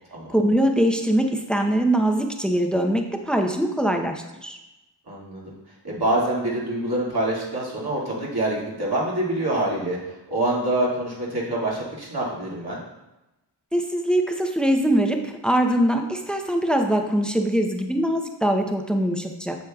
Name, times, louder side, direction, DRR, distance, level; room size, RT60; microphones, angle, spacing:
voice 1, 0.3-4.6 13.7-19.6, right 1 dB, ahead, 4 dB, 0.7 m, -22 dB
voice 2, 5.1-5.5 5.8-10.0 10.3-12.8, right 1 dB, 60° right, -5 dB, 2.2 m, -25 dB
8.0 x 7.6 x 2.3 m, 0.98 s
wide cardioid pair, 60°, 42 cm